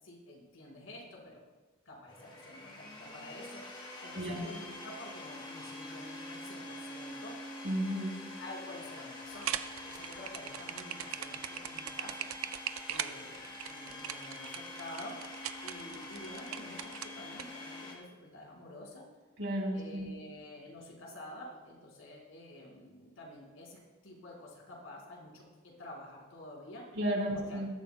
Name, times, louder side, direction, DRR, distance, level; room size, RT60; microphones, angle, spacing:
voice 1, 0.0-1.4 1.8-7.5 8.4-9.6 9.9-12.3 12.9-19.0 19.7-26.8 27.3-27.6, left 1 dB, 75° left, -3 dB, 4.7 m, -49 dB
Domestic sounds home sounds, 2.1-18.0, left 2 dB, 25° left, 2.0 m, -46 dB
voice 2, 4.2-4.5 7.6-8.2 19.4-20.1 27.0-27.7, equal, 60° right, -2 dB, 4.1 m, -33 dB
sound 1, 9.3-17.4, right 10 dB, 75° right, 0.5 m, -40 dB
21.5 x 13.0 x 2.2 m, 1.3 s
head